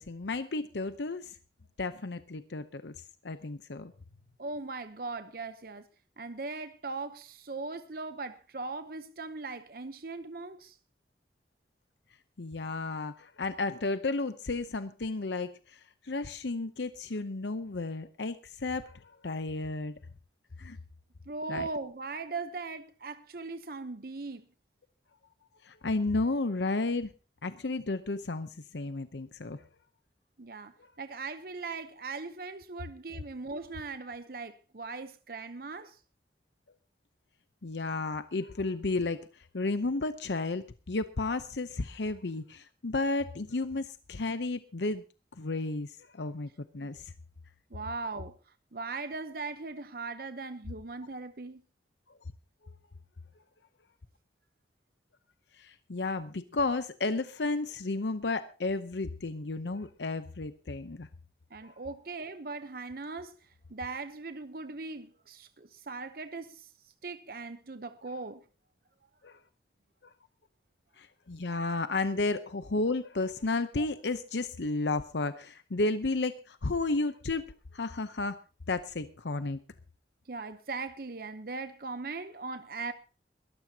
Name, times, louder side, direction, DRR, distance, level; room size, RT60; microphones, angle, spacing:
voice 1, 0.0-1.4 1.8-2.9 3.2-3.9 12.4-19.9 20.6-20.8 21.5-21.7 25.6-27.1 27.4-29.6 30.8-30.9 37.6-45.0 45.4-47.1 55.6-61.1 61.6-61.7 69.2-69.4 70.0-70.1 71.0-77.5 77.7-78.4 78.7-79.6, left 3 dB, 80° left, 0.8 m, -33 dB
voice 2, 4.4-5.9 6.2-10.8 21.3-24.5 30.4-36.0 47.7-48.3 48.7-51.6 61.5-63.4 63.7-66.7 67.0-68.4 73.8-73.9 80.3-82.9, right 3 dB, 55° right, 0.9 m, -39 dB
22.0 x 13.5 x 2.9 m
head